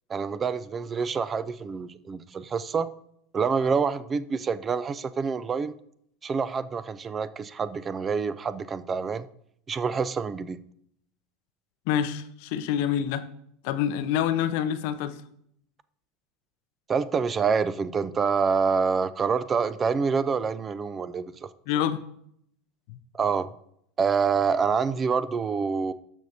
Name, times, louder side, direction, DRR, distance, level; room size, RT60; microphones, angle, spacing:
voice 1, 0.1-2.9 3.3-5.7 6.2-9.3 9.7-10.6 16.9-21.5 23.1-23.5 24.0-25.9, right 5 dB, 30° right, 0.4 m, -27 dB
voice 2, 11.9-13.3 13.6-15.2 21.7-22.0 22.9-23.0, left 9 dB, 60° left, 0.5 m, -27 dB
13.0 x 5.3 x 2.7 m
hypercardioid pair, 85°, 0 cm